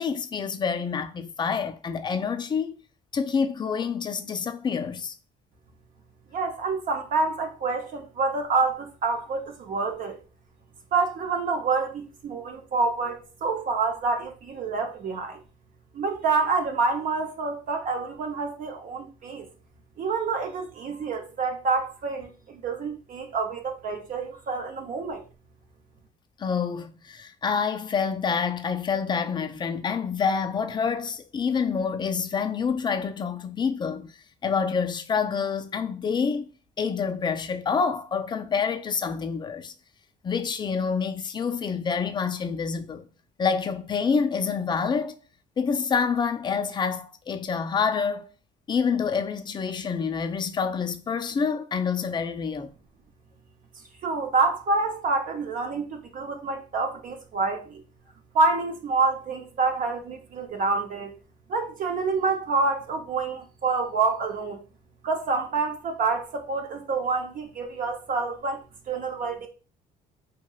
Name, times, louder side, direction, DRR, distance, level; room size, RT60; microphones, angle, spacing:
voice 1, 0.0-2.8 3.1-5.1 26.4-34.1 34.4-36.5 36.8-39.7 40.2-43.0 43.4-45.1 45.6-48.3 48.7-52.7, left 6 dB, 25° left, 0.3 m, -27 dB
voice 2, 6.3-10.2 10.9-15.4 15.9-19.5 20.0-22.3 22.6-25.2 54.0-57.8 58.3-61.1 61.5-64.6 65.0-69.5, right 4 dB, 55° right, 0.6 m, -27 dB
2.9 x 2.8 x 2.3 m
cardioid pair, 110°, 17 cm